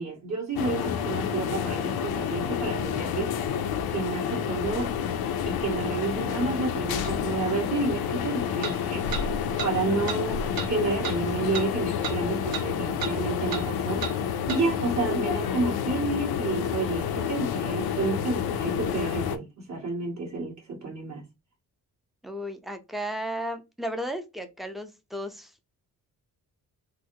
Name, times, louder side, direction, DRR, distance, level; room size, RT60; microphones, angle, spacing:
voice 1, 0.0-3.3 3.9-4.9 5.4-9.1 9.6-14.0 14.5-21.3, right 3 dB, 50° right, 2.0 m, -30 dB
sound 1, 0.6-19.4, left 8 dB, 85° left, 0.6 m, -29 dB
sound 2, 7.0-7.1 8.6-8.8 9.1-9.3 9.6-9.7 10.1-10.2 10.6-10.7 11.0-11.2 11.5-11.7 12.0-12.2 12.5-12.7 13.0-13.2 13.5-13.7 14.0-14.2 14.5-14.6, right 7 dB, 75° right, 0.9 m, -33 dB
voice 2, 22.2-25.5, equal, ahead, 0.5 m, -34 dB
3.9 x 2.1 x 2.7 m
cardioid pair, 110°, 36 cm